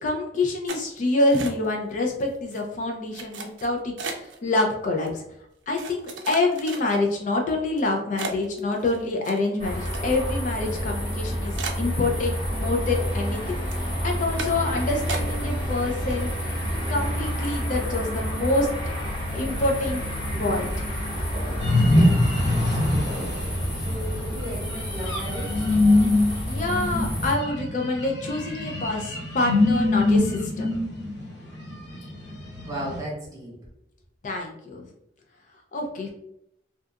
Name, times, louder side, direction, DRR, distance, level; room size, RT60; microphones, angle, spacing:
voice 1, 0.0-5.2 5.7-16.3 16.9-18.9 19.3-20.0 20.4-20.9 26.5-30.7 34.2-34.9 35.7-36.1, left 2 dB, 45° left, 1 dB, 0.4 m, -26 dB
sound 1, 0.7-1.9 2.2-2.6 3.1-4.4 5.1-5.2 5.7-7.2 7.7-7.8 8.2-10.4 10.7-10.8 11.1-11.2 11.6-12.6 12.9-13.4 13.7-13.9 14.4-14.7 15.1-15.7 16.0-16.6 17.0-17.1 17.4-17.7, right 4 dB, 85° right, 0.4 m, -36 dB
sound 2, 9.6-27.3, equal, 30° left, 1.1 m, -29 dB
voice 2, 20.3-20.8 21.1-25.7 32.7-33.6, right 1 dB, 20° right, -5 dB, 0.9 m, -36 dB
sound 3, 21.6-33.0, left 2 dB, 75° left, 0.9 m, -24 dB
2.7 x 2.3 x 2.2 m, 0.77 s
head